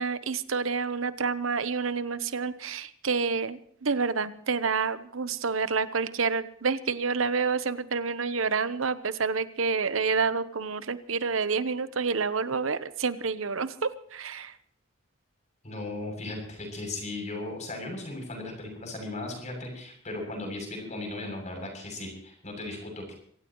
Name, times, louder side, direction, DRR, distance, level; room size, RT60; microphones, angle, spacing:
voice 1, 0.0-14.6, right 5 dB, 80° right, 13 dB, 1.0 m, -28 dB
voice 2, 15.6-23.1, left 2 dB, 35° left, 2 dB, 7.8 m, -37 dB
25.5 x 17.0 x 3.1 m, 0.62 s
head